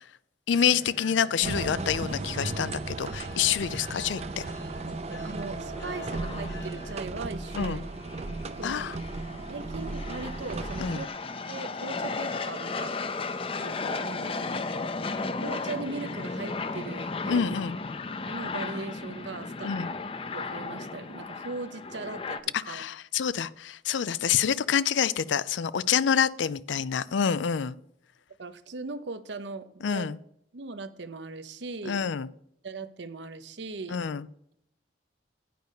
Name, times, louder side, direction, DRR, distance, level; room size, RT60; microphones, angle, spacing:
voice 1, 0.5-4.4 7.6-7.8 8.6-9.0 10.8-11.0 17.3-17.8 19.6-19.9 22.5-27.7 29.8-30.2 31.8-32.3 33.9-34.3, left 7 dB, 85° left, 18 dB, 0.4 m, -27 dB
sound 1, 0.5-7.0, left 1 dB, 60° left, 1.8 m, -46 dB
sound 2, 1.4-11.1, right 3 dB, 35° right, 0.5 m, -36 dB
voice 2, 4.9-7.8 8.4-8.9 9.5-11.1 11.4-13.2 13.6-14.6 15.4-17.5 18.3-19.7 20.3-22.8 28.4-30.1 30.5-32.1 32.6-34.0, right 3 dB, 75° right, 12 dB, 0.7 m, -39 dB
sound 3, 5.5-22.4, left 3 dB, 30° left, 0.5 m, -35 dB
9.2 x 5.2 x 6.6 m, 0.73 s
head